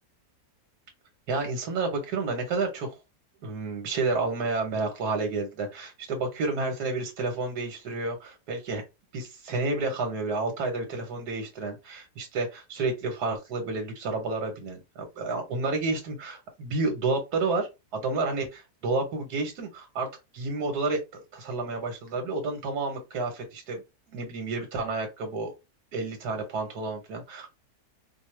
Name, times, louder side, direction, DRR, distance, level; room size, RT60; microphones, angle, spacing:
voice 1, 1.3-2.9 3.4-8.8 9.1-17.7 17.9-20.1 20.3-23.8 24.1-25.5 25.9-27.5, right 3 dB, 80° right, 3 dB, 1.6 m, -30 dB
4.9 x 2.2 x 3.1 m, 0.24 s
omnidirectional pair, 1.7 m